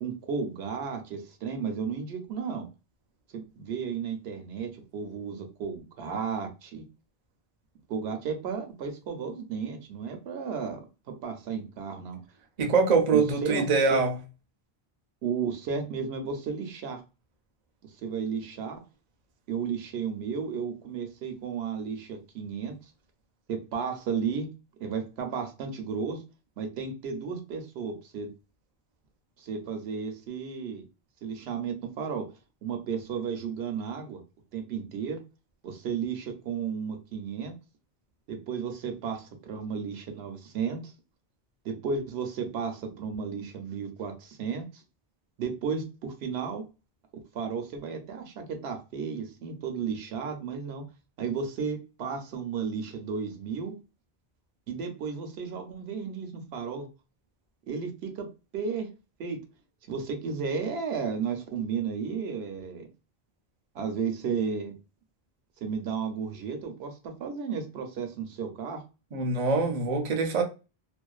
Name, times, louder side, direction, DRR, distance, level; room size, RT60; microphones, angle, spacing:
voice 1, 0.0-2.7 3.3-6.9 7.9-10.8 11.1-12.2 13.1-14.0 15.2-17.0 17.8-18.8 19.5-22.8 23.5-24.5 24.8-26.2 26.6-28.3 29.4-30.8 31.2-32.3 32.6-34.2 34.5-35.2 35.6-37.6 38.3-40.9 41.6-44.8 45.4-46.6 47.3-50.8 51.2-53.7 54.7-56.9 57.7-58.3 58.5-58.9 59.2-59.4 59.9-62.9 63.7-64.8 65.6-68.8, right 6 dB, 80° right, 0.9 m, -33 dB
voice 2, 12.6-14.1 69.1-70.4, right 4 dB, 50° right, 0.5 m, -24 dB
2.5 x 2.1 x 2.3 m
omnidirectional pair, 1.1 m